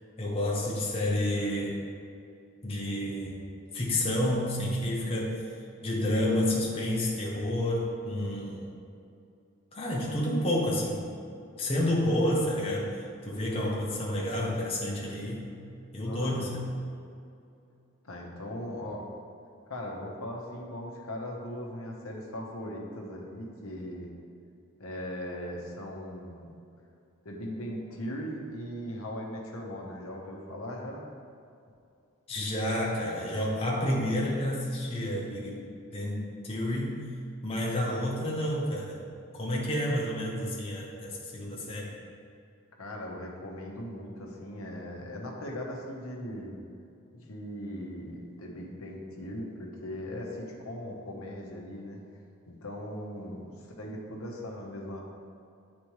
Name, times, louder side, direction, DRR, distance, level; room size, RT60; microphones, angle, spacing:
voice 1, 0.2-1.8 2.6-3.5 3.7-5.5 5.8-8.7 9.7-11.0 11.6-15.5 15.9-16.6 32.3-35.6 35.9-37.0 37.4-39.0 39.3-41.9, left 1 dB, 25° left, -4 dB, 0.8 m, -30 dB
voice 2, 16.0-16.5 18.0-19.1 19.7-24.1 24.8-26.5 27.2-31.1 42.8-46.6 47.1-52.0 52.5-55.0, left 1 dB, 90° left, -1 dB, 1.0 m, -39 dB
8.6 x 4.3 x 3.1 m, 2.5 s
head